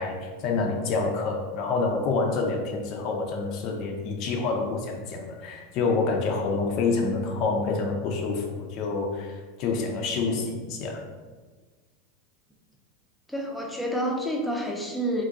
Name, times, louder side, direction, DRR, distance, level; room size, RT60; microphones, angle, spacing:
voice 1, 0.0-11.0, left 4 dB, 50° left, 2 dB, 0.4 m, -27 dB
voice 2, 13.3-15.2, equal, 5° left, 0 dB, 0.6 m, -29 dB
2.4 x 2.2 x 3.8 m, 1.4 s
hypercardioid pair, 100°, 0 cm